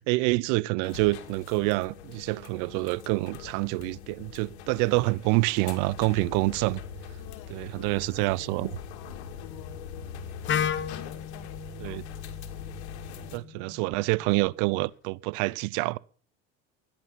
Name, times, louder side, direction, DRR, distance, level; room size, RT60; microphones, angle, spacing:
voice 1, 0.0-6.8 7.5-8.7 11.8-12.0 13.3-16.0, right 23 dB, 65° right, 0.7 m, -27 dB
sound 1, 0.8-13.4, left 7 dB, 80° left, 2.3 m, -42 dB
voice 2, 7.2-10.3 10.7-12.2, left 11 dB, 65° left, 3.1 m, -53 dB
Wind instrument woodwind instrument, 10.5-14.3, left 8 dB, 35° left, 1.2 m, -34 dB
17.0 x 10.5 x 7.3 m
supercardioid pair, 90°, 33 cm